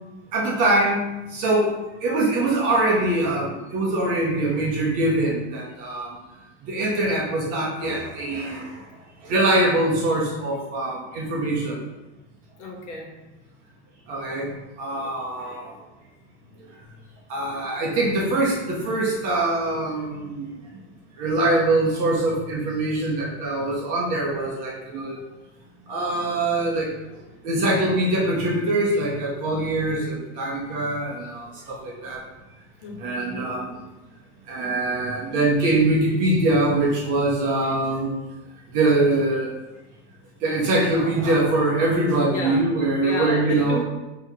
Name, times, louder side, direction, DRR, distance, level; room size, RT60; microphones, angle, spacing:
voice 1, 0.3-1.0 1.3-1.7 2.0-6.2 6.6-8.8 9.2-11.8 14.1-14.5 14.8-15.8 17.3-20.5 21.2-25.2 25.9-26.9 27.4-32.2 33.0-33.8 34.5-38.1 38.7-39.5 40.4-43.8, right 2 dB, 20° right, -3 dB, 0.4 m, -23 dB
voice 2, 12.6-13.1 32.8-33.2 42.3-42.7 43.0-43.8, left 2 dB, 75° left, 0 dB, 1.3 m, -31 dB
4.0 x 2.8 x 4.5 m, 1.0 s
supercardioid pair, 175°, 36 cm